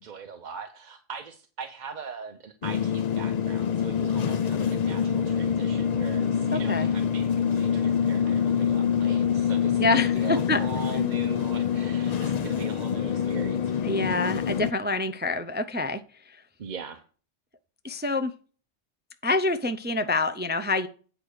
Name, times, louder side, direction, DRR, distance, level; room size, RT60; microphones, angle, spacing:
voice 1, 0.0-14.1 16.6-17.0, right 6 dB, 45° right, 6 dB, 0.8 m, -41 dB
sound 1, 2.6-14.7, left 8 dB, 50° left, 0.5 m, -26 dB
voice 2, 6.5-6.9 9.8-10.6 13.8-16.0 16.3-16.4 17.8-18.3 19.2-20.9, left 2 dB, 15° right, 9 dB, 0.3 m, -26 dB
8.8 x 4.7 x 6.5 m, 0.39 s
omnidirectional pair, 1.2 m